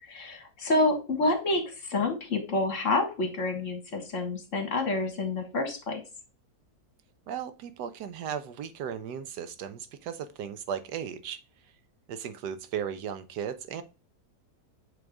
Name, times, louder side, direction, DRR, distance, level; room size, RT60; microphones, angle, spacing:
voice 1, 0.1-6.0, left 2 dB, 50° left, 5 dB, 1.8 m, -28 dB
voice 2, 7.3-11.4 12.1-13.8, right 8 dB, 90° right, 11 dB, 1.4 m, -36 dB
7.8 x 3.9 x 3.5 m, 0.31 s
omnidirectional pair, 1.7 m